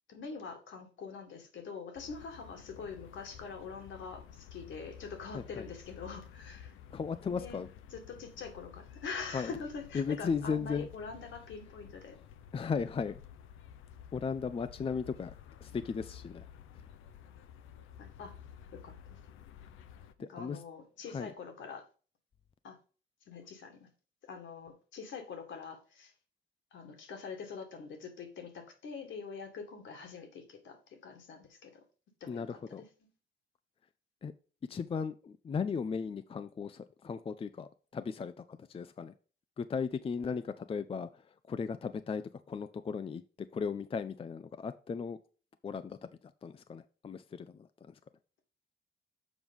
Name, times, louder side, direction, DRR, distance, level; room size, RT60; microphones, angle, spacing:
voice 1, 0.1-6.8 7.3-7.6 7.9-12.2 18.0-18.3 18.7-19.2 20.2-21.9 22.6-22.8 23.3-23.9 24.2-26.1 26.7-31.8 32.2-33.1, left 5 dB, 70° left, 2.0 m, -44 dB
sound 1, 1.9-20.1, left 9 dB, 90° left, 0.7 m, -52 dB
voice 2, 5.3-5.7 6.9-7.7 9.3-9.5 9.9-10.9 12.5-13.2 14.1-15.3 15.6-16.5 20.2-20.6 21.1-21.3 32.3-32.8 34.2-34.3 34.7-39.1 39.6-43.2 43.5-45.2 45.6-46.0 46.4-48.0, left 5 dB, 30° left, 0.5 m, -36 dB
7.2 x 4.7 x 5.3 m
cardioid pair, 90°, 20 cm